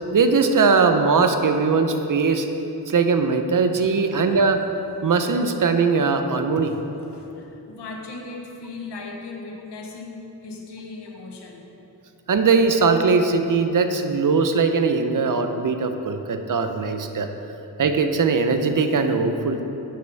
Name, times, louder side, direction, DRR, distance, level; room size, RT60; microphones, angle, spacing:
voice 1, 0.1-2.5 2.9-4.6 5.0-6.7 12.3-17.3 17.8-19.6, right 4 dB, 50° right, 7 dB, 0.8 m, -20 dB
voice 2, 7.0-11.7, left 3 dB, 85° left, 1 dB, 1.3 m, -38 dB
11.0 x 7.8 x 3.5 m, 3.0 s
cardioid pair, 75°, 40 cm